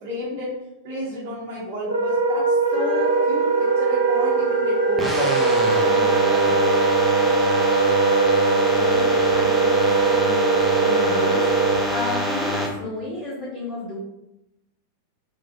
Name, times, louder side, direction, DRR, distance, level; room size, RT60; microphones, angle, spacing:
voice 1, 0.0-0.5 0.8-5.3 5.6-6.6, right 1 dB, 45° right, -7 dB, 0.8 m, -32 dB
Wind instrument woodwind instrument, 1.8-11.9, right 4 dB, 90° right, 0.4 m, -20 dB
Wind instrument woodwind instrument 2, 2.6-7.9, left 1 dB, 25° right, 0.9 m, -33 dB
sound 1, 5.0-12.7, equal, 5° right, 0.6 m, -25 dB
voice 2, 8.5-14.0, left 2 dB, 40° left, -9 dB, 1.3 m, -33 dB
3.0 x 2.4 x 2.5 m, 0.88 s
figure-of-eight pair, 90°, 0 cm